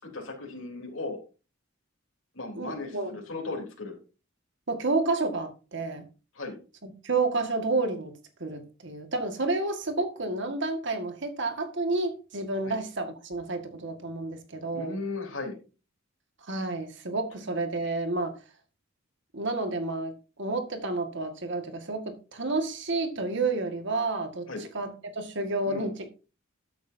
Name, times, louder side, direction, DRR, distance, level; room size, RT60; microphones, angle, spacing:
voice 1, 0.0-1.2 2.3-4.0 6.4-6.6 12.6-12.8 14.7-15.5 24.5-24.6 25.6-25.9, left 3 dB, 70° left, 0 dB, 3.5 m, -36 dB
voice 2, 2.6-3.1 4.7-6.0 6.8-8.1 8.4-15.0 16.4-18.3 19.3-24.5 24.7-26.1, right 3 dB, 60° right, 7 dB, 1.8 m, -30 dB
13.5 x 8.4 x 2.7 m, 0.33 s
head